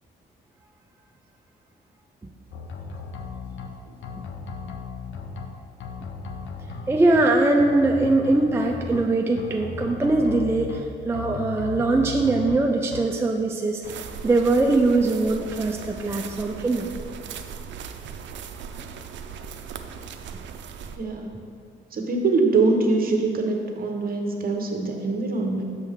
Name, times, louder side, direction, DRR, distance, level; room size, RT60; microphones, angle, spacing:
sound 1, 2.5-3.7 4.0-5.5 5.8-7.2 7.6-9.0 9.4-10.8 11.1-12.6 12.9-13.0, left 5 dB, 70° left, 0.7 m, -36 dB
voice 1, 6.9-16.9, right 2 dB, 10° right, 1 dB, 0.4 m, -22 dB
sound 2, 13.8-21.0, right 6 dB, 65° right, 0.5 m, -38 dB
voice 2, 20.9-21.4 21.9-25.6, right 3 dB, 45° right, 2 dB, 1.0 m, -23 dB
6.4 x 6.1 x 3.5 m, 2.3 s
cardioid pair, 90°, 20 cm